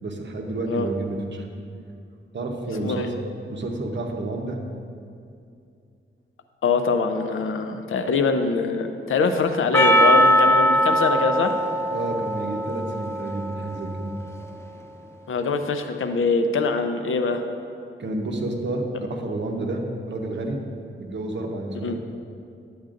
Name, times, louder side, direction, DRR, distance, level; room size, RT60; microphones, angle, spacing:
voice 1, 0.0-1.5 2.3-3.1 3.5-4.6 11.9-14.1 18.0-20.6 21.0-21.9, right 2 dB, 60° right, 2 dB, 0.9 m, -30 dB
voice 2, 6.6-11.5 15.3-17.4 21.8-21.9, left 4 dB, 80° left, 7 dB, 0.6 m, -23 dB
Percussion, 9.7-14.2, equal, 10° left, 0.4 m, -21 dB
10.5 x 7.9 x 2.5 m, 2.5 s
wide cardioid pair, 125°, 21 cm